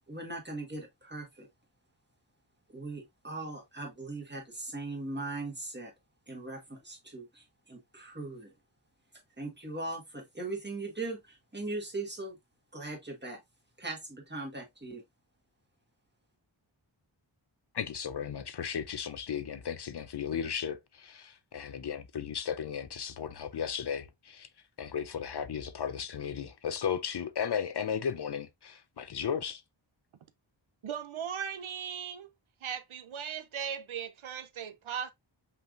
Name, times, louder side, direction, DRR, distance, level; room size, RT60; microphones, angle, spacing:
voice 1, 0.1-1.5 2.7-5.9 6.3-8.5 9.4-12.4 12.7-13.4 13.8-15.0, right 2 dB, 20° right, 1.7 m, -39 dB
voice 2, 17.7-24.5 24.8-29.6, left 7 dB, 55° left, 0.5 m, -35 dB
voice 3, 30.8-32.3 32.6-35.1, right 8 dB, 80° right, 0.6 m, -38 dB
5.6 x 3.3 x 2.5 m
wide cardioid pair, 80°, 47 cm